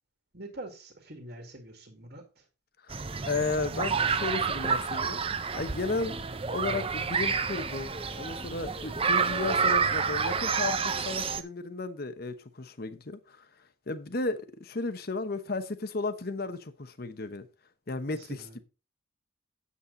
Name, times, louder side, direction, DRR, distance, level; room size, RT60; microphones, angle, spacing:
voice 1, 0.3-2.2 18.1-18.6, right 1 dB, 50° right, 2.1 m, -44 dB
voice 2, 2.8-5.2 5.5-6.2 6.5-13.4 13.9-17.5 17.9-18.6, left 3 dB, 50° left, 1.0 m, -34 dB
sound 1, 2.9-11.4, right 5 dB, 30° right, 0.6 m, -29 dB
8.4 x 8.4 x 3.9 m
head